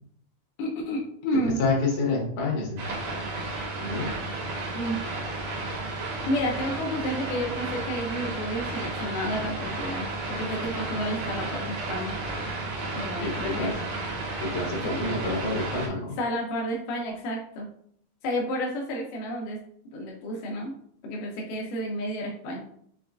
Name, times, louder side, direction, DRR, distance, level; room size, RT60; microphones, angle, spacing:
voice 1, 0.6-1.6 4.7-5.0 6.3-12.2 12.9-13.7 14.8-15.1 16.2-17.7 18.2-19.6 19.9-20.8 21.0-22.6, equal, 85° left, -1 dB, 1.8 m, -31 dB
voice 2, 1.6-2.8 3.8-4.1 13.2-13.7 14.4-16.2, left 3 dB, 65° left, -2 dB, 1.9 m, -28 dB
sound 1, 2.8-15.9, right 2 dB, 75° right, 2.5 m, -33 dB
5.9 x 2.3 x 2.4 m, 0.64 s
omnidirectional pair, 4.5 m